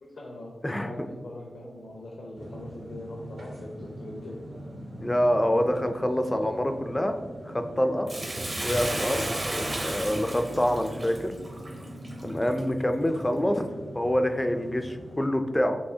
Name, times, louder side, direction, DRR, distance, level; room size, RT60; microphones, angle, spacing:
voice 1, 0.0-4.4, left 1 dB, 75° left, -3 dB, 0.7 m, -41 dB
voice 2, 0.6-1.1 5.0-7.2 7.5-8.1 8.6-11.3 12.2-13.6 13.9-15.8, equal, 15° left, 6 dB, 0.4 m, -26 dB
sound 1, 2.3-15.3, right 1 dB, 80° right, 1.3 m, -42 dB
Bathtub (filling or washing), 8.1-12.6 13.1-13.2, right 1 dB, 30° right, 0.6 m, -33 dB
5.4 x 3.3 x 2.7 m, 1.4 s
wide cardioid pair, 110°, 0 cm